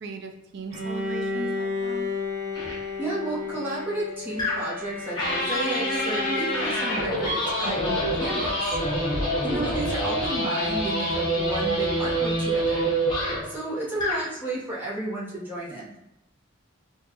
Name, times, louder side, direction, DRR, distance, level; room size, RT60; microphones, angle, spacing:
voice 1, 0.0-2.1 7.6-8.3, right 2 dB, 55° right, 5 dB, 0.5 m, -38 dB
Bowed string instrument, 0.7-7.4, left 4 dB, 25° right, 1.4 m, -33 dB
sound 1, 2.6-2.8 4.4-4.8 5.2-13.5 13.9-14.3, equal, 20° left, 0.8 m, -26 dB
voice 2, 3.0-8.7 9.4-12.9 13.4-15.9, right 2 dB, 10° right, -8 dB, 0.9 m, -32 dB
4.3 x 2.4 x 2.8 m, 0.93 s
head